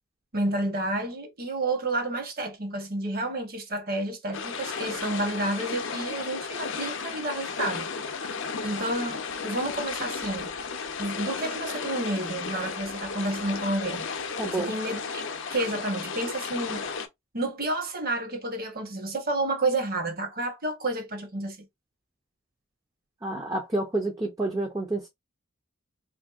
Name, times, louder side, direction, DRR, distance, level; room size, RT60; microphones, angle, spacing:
voice 1, 0.3-7.9 8.6-10.6 11.0-14.1 14.5-15.2 15.5-16.9 17.3-21.6, right 2 dB, 45° right, 0.8 m, -30 dB
sound 1, 4.3-17.1, left 5 dB, 65° left, 0.5 m, -34 dB
voice 2, 14.4-14.7 23.2-25.1, right 2 dB, 15° right, 0.4 m, -29 dB
3.2 x 2.6 x 2.3 m
head